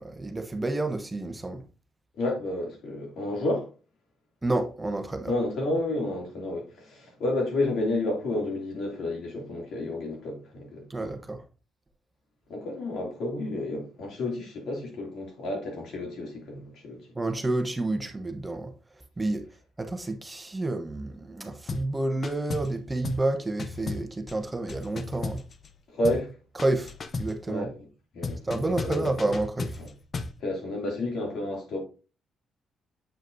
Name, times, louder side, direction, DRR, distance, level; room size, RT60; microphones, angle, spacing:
voice 1, 0.0-1.6 4.4-5.3 10.9-11.4 17.1-18.7 19.2-19.4 19.8-25.4 26.5-27.7 28.4-29.8, right 2 dB, 15° right, 1.0 m, -29 dB
voice 2, 2.2-3.7 5.2-11.1 12.5-17.1 25.9-26.3 27.5-27.7 28.1-29.1 29.8-29.9 30.4-31.8, left 1 dB, 75° left, 2.7 m, -31 dB
sound 1, 21.7-21.9 22.2-22.8 23.0-23.3 23.6-25.8 26.0-26.3 26.6-27.4 28.2-30.4, left 4 dB, 40° left, 0.7 m, -35 dB
7.7 x 4.9 x 2.7 m
cardioid pair, 90°, 0 cm